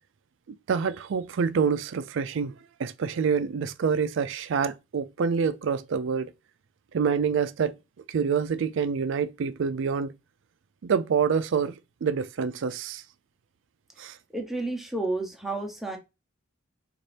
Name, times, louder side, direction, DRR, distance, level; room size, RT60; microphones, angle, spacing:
voice 1, 0.5-2.5 2.8-6.3 6.9-7.7 8.1-10.1 10.8-13.0 14.0-14.2, right 6 dB, 65° right, 0.4 m, -27 dB
voice 2, 14.3-16.0, right 2 dB, ahead, 0.7 m, -31 dB
4.1 x 2.5 x 3.3 m
head